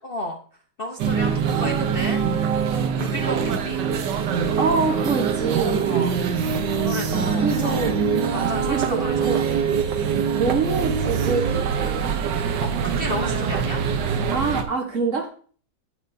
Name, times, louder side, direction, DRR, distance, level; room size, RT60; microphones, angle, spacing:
voice 1, 0.0-0.4 0.8-2.2 3.0-3.8 5.8-6.1 6.7-7.8 8.3-9.4 12.6-13.8, left 1 dB, 40° left, 2 dB, 0.9 m, -32 dB
sound 1, 1.0-14.6, right 6 dB, 70° right, 1.5 m, -23 dB
voice 2, 4.6-5.9 7.4-8.0 8.6-9.6 10.3-12.2 14.3-15.3, right 4 dB, 45° right, 3 dB, 1.6 m, -25 dB
10.5 x 8.8 x 2.7 m, 0.43 s
omnidirectional pair, 2.0 m